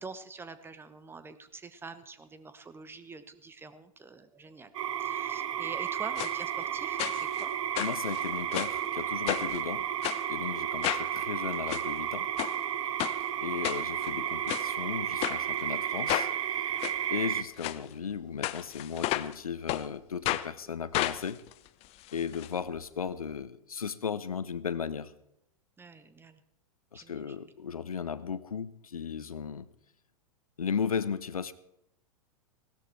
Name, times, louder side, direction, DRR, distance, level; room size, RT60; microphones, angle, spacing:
voice 1, 0.0-4.7 5.0-7.5 25.8-26.4 26.9-27.5, right 4 dB, 10° right, 12 dB, 1.0 m, -46 dB
sound 1, 4.7-17.4, right 10 dB, 60° right, 1.0 m, -32 dB
sound 2, 6.2-6.3 7.0-7.4 7.7-8.8 9.3-9.6 10.0-10.2 10.8-11.1 11.5-11.8 12.4-12.5 13.0-13.2 13.6-14.1 14.5-14.7 15.2-15.4 16.1-16.3 16.8-16.9 17.6-17.8 18.4-19.4 19.7-19.8 20.2-20.5 20.9-22.5 22.8-22.9 23.1-23.2, left 16 dB, 35° left, 0.7 m, -32 dB
voice 2, 7.8-9.9 10.3-12.3 13.4-16.3 17.1-21.4 22.1-25.1 26.9-29.7 30.6-31.5, left 6 dB, 80° left, 15 dB, 0.8 m, -35 dB
17.0 x 13.0 x 4.5 m, 0.77 s
figure-of-eight pair, 105°, 18 cm